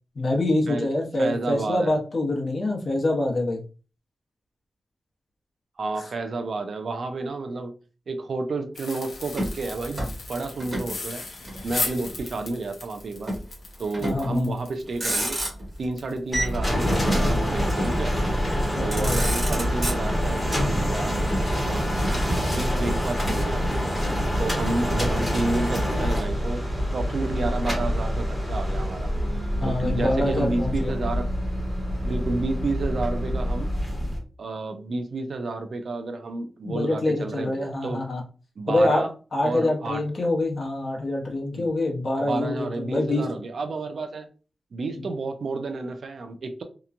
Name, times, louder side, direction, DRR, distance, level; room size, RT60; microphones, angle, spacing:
voice 1, 0.1-3.6 5.9-6.1 14.0-14.6 18.5-19.2 29.6-30.9 36.6-38.2 38.7-43.3 45.0-45.1, left 2 dB, 45° left, 0.8 m, -25 dB
voice 2, 1.2-1.9 5.8-7.7 8.1-11.2 11.6-13.3 13.8-15.4 15.8-18.1 18.8-21.2 21.6-21.9 22.5-23.9 24.4-29.1 29.6-31.3 32.0-33.7 34.4-38.0 38.6-39.1 39.4-40.0 41.5-41.7 42.2-44.3 44.7-46.6, right 3 dB, 65° right, 0.4 m, -30 dB
sound 1, 8.7-16.6 16.9-17.0 17.4-17.6 18.0-18.2, left 3 dB, 80° left, 0.7 m, -36 dB
Motor vehicle (road), 9.3-10.9 11.2-12.3 13.3-13.5 13.9-14.4 14.8-15.9 17.1-18.1 18.6-18.7 18.9-20.4 21.3-22.9, right 1 dB, 30° right, 1.1 m, -31 dB
sound 2, 16.3-34.2, equal, 10° left, 1.0 m, -26 dB
2.9 x 2.2 x 2.4 m
wide cardioid pair, 130°, 0 cm